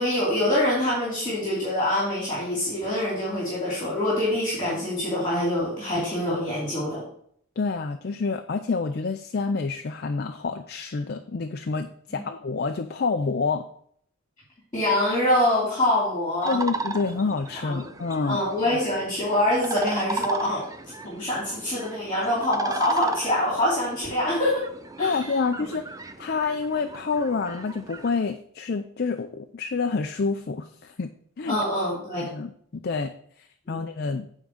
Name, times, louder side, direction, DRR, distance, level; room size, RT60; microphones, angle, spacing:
voice 1, 0.0-7.0 12.2-12.3 14.7-16.6 17.5-17.8 18.2-20.6 21.0-24.6 25.0-25.2 31.5-32.3 33.7-33.8, left 1 dB, 20° left, -5 dB, 2.7 m, -25 dB
voice 2, 7.6-13.7 16.5-18.4 25.0-25.8 26.2-31.1 31.4-31.6 32.2-34.3, left 4 dB, 45° left, 7 dB, 0.4 m, -28 dB
sound 1, 16.4-28.1, right 3 dB, 15° right, 0.4 m, -36 dB
9.2 x 3.7 x 6.3 m, 0.64 s
head